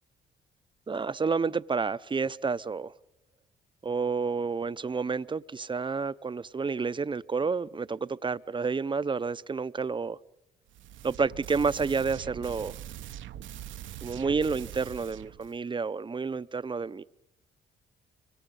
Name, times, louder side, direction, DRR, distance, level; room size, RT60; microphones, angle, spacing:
voice 1, 0.9-2.9 3.8-10.2 11.0-12.7 14.0-17.0, right 4 dB, 25° right, 0.7 m, -30 dB
sound 1, 10.7-15.6, right 11 dB, 75° right, 0.9 m, -42 dB
26.0 x 24.5 x 5.4 m
cardioid pair, 90°, 20 cm